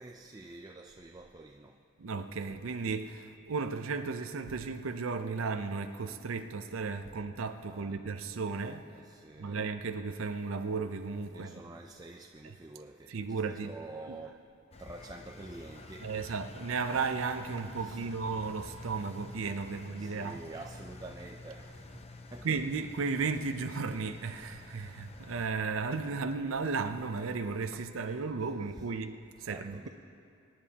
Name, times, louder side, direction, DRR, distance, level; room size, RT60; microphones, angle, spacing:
voice 1, 0.0-1.8 7.7-8.0 8.9-9.6 11.3-14.4 14.8-16.4 17.8-18.1 20.0-22.5 28.4-28.5 28.7-28.9 29.4-29.9, right 2 dB, 20° right, 0.4 m, -48 dB
voice 2, 2.0-8.8 9.4-11.6 12.4-12.6 13.1-13.8 14.1-14.2 16.0-20.5 22.4-29.9, right 4 dB, 75° right, 0.6 m, -35 dB
Engine, 14.7-25.5, left 2 dB, 30° left, 0.6 m, -49 dB
26.0 x 10.5 x 2.9 m
head